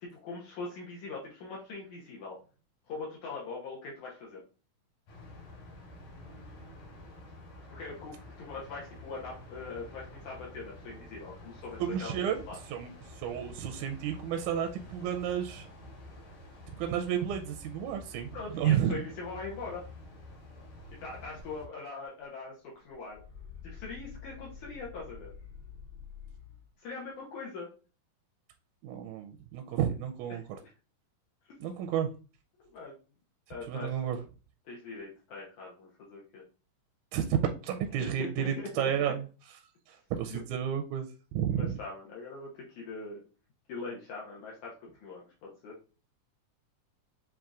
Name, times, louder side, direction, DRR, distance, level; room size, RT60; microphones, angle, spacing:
voice 1, 0.0-2.4 2.9-4.4 7.7-12.6 18.3-19.8 21.0-23.2 23.6-25.3 26.8-27.7 30.3-30.4 31.5-31.6 32.6-33.0 33.5-34.0 34.7-36.4 38.0-39.1 40.3-40.4 41.5-43.2 43.7-45.7, left 3 dB, 70° left, -3 dB, 2.2 m, -42 dB
sound 1, 5.1-21.7, left 1 dB, 90° left, 4.1 m, -49 dB
voice 2, 11.8-12.4 12.7-12.9 13.2-15.7 16.8-19.0 28.8-30.4 31.6-32.1 33.7-34.2 37.1-37.4 37.6-39.2 39.9-41.8, right 9 dB, 80° right, 4 dB, 1.8 m, -31 dB
sound 2, 21.4-21.5 21.9-22.4 22.7-26.7, left 6 dB, 50° left, 2.2 m, -48 dB
7.1 x 2.8 x 2.4 m, 0.35 s
omnidirectional pair, 3.7 m